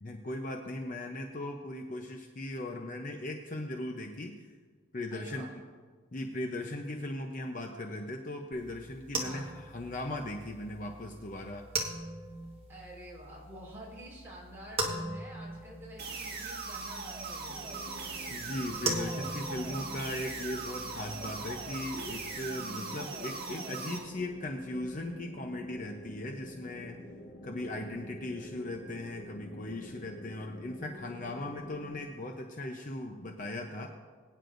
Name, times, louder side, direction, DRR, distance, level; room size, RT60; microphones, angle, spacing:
voice 1, 0.0-4.5 4.9-5.5 6.1-11.7 18.3-27.0 27.4-33.9, left 1 dB, 40° left, 3 dB, 0.7 m, -38 dB
voice 2, 5.1-5.5 9.2-9.6 12.7-17.8, equal, 10° right, -6 dB, 4.2 m, -48 dB
sound 1, 8.5-22.1, right 2 dB, 30° right, 1.4 m, -41 dB
sound 2, 16.0-24.0, right 4 dB, 50° right, 2.0 m, -40 dB
sound 3, 17.5-32.1, equal, 65° left, 1.3 m, -48 dB
22.5 x 9.6 x 2.6 m, 1.5 s
head